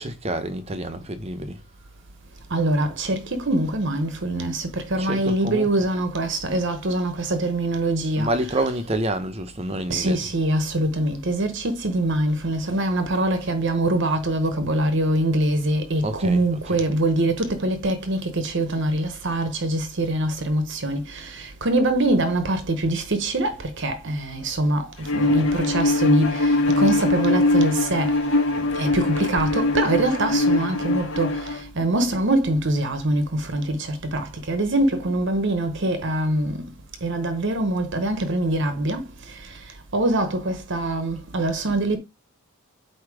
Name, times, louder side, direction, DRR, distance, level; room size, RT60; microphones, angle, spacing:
voice 1, 0.0-1.6 5.0-5.7 8.2-10.2 16.0-16.4 16.7-16.8, right 1 dB, 30° right, 0.8 m, -28 dB
voice 2, 2.5-4.6 4.9-8.3 9.9-21.0 21.6-23.5 23.8-24.8 25.1-26.3 26.8-28.1 28.8-31.3 31.8-33.2 33.5-33.8 34.1-36.5 37.0-39.0 39.9-42.0, right 1 dB, 55° right, 1.0 m, -23 dB
Bowed string instrument, 25.1-31.6, left 2 dB, 55° left, 1.6 m, -22 dB
8.3 x 2.9 x 4.8 m
head